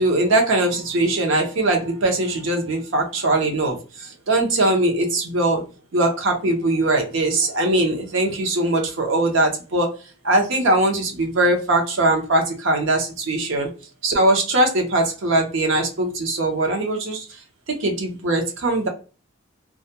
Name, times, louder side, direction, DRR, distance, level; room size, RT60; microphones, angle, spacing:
voice 1, 0.0-5.6 5.9-9.9 10.2-13.7 14.0-17.2 17.7-18.9, right 2 dB, 65° right, 2 dB, 0.7 m, -21 dB
2.3 x 2.2 x 2.8 m, 0.36 s
head